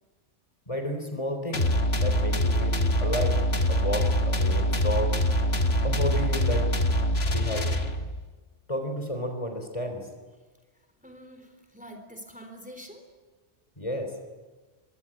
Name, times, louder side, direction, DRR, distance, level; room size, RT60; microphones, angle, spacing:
voice 1, 0.7-1.6 2.0-3.4 3.7-5.2 5.8-6.7 7.3-7.7 8.7-10.1 13.8-14.1, equal, 30° left, 6 dB, 3.5 m, -31 dB
sound 1, 1.5-8.2, equal, 60° left, 2.0 m, -24 dB
voice 2, 11.0-13.0, equal, 5° right, 5 dB, 3.7 m, -45 dB
24.0 x 24.0 x 9.9 m, 1.3 s
omnidirectional pair, 1.2 m